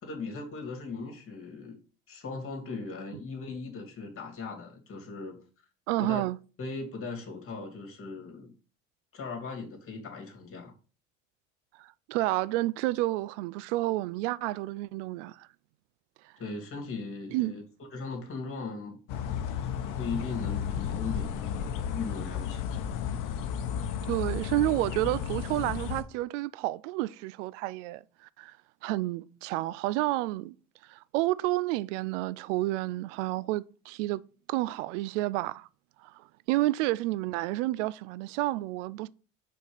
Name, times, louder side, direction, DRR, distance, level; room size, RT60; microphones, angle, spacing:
voice 1, 0.0-1.8 2.1-5.4 6.0-6.2 6.6-8.5 9.1-10.7 16.4-17.6 17.9-19.0 20.0-22.9, left 4 dB, 35° left, 2.5 m, -38 dB
voice 2, 5.9-6.4 11.8-15.5 17.3-17.6 24.1-28.0 28.4-28.6 28.8-30.5 30.9-34.2 34.5-35.7 36.0-39.1, right 17 dB, 65° right, 0.5 m, -30 dB
sound 1, 19.1-26.0, left 8 dB, 55° left, 0.9 m, -33 dB
5.2 x 4.4 x 4.9 m
hypercardioid pair, 80°, 39 cm